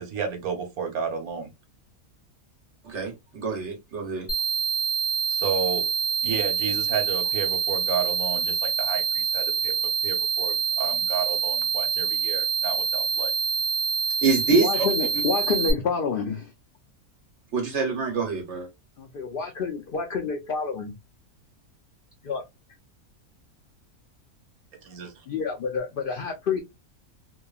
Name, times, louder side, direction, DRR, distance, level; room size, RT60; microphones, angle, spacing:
voice 1, 0.0-1.5 5.3-5.8 6.2-9.7 10.0-13.3 24.8-25.3, right 6 dB, 80° right, 1.2 m, -32 dB
voice 2, 2.8-4.3 14.2-14.9 17.5-18.7, right 4 dB, 55° right, 1.0 m, -25 dB
sound 1, 4.3-15.7, right 6 dB, 20° left, 0.6 m, -26 dB
voice 3, 14.5-16.5 19.0-20.9 22.2-22.4 25.3-26.6, left 5 dB, 90° left, 0.4 m, -28 dB
2.9 x 2.2 x 2.2 m
omnidirectional pair, 1.5 m